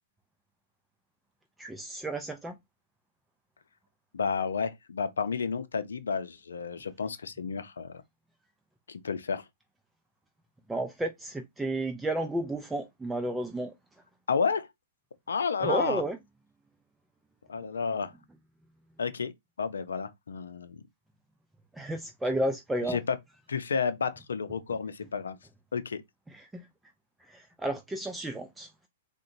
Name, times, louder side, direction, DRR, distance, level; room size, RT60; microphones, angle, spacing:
voice 1, 1.6-2.6 10.7-13.7 15.6-16.2 21.7-23.0 26.3-26.7 27.3-28.7, right 1 dB, 5° right, 0.4 m, -32 dB
voice 2, 4.1-8.0 8.9-9.4 14.3-14.7 15.3-16.0 17.5-18.1 19.0-19.3 19.6-20.8 22.9-23.2 23.5-25.4 25.7-26.0, left 5 dB, 90° left, 0.5 m, -31 dB
3.7 x 2.2 x 2.6 m
hypercardioid pair, 130°, 0 cm